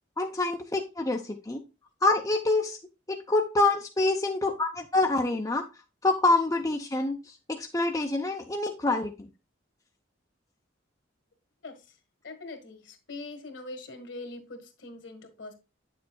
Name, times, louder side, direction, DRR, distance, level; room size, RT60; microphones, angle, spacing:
voice 1, 0.2-1.6 2.0-2.8 3.1-5.6 6.0-7.2 7.5-9.1, left 2 dB, 20° left, 3 dB, 0.6 m, -26 dB
voice 2, 11.6-12.0 12.2-15.5, left 2 dB, 65° left, 6 dB, 1.6 m, -42 dB
8.7 x 6.8 x 2.3 m, 0.28 s
head